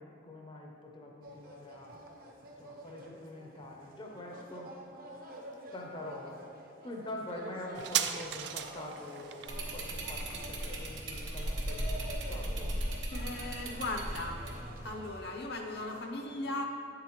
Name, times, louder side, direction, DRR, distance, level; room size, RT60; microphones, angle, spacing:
voice 1, 0.0-2.0 2.6-4.8 5.1-5.3 5.7-6.4 6.8-12.8, left 1 dB, 25° left, 0 dB, 0.6 m, -45 dB
sound 1, 1.2-16.1, right 1 dB, 50° right, 0.8 m, -49 dB
sound 2, 7.7-14.8 15.1-15.2, right 10 dB, 65° right, 0.4 m, -40 dB
sound 3, 9.5-14.9, right 1 dB, 90° right, 1.1 m, -37 dB
voice 2, 13.1-14.4 14.8-16.7, left 2 dB, 60° left, 2 dB, 0.7 m, -37 dB
8.9 x 7.4 x 3.0 m, 2.6 s
head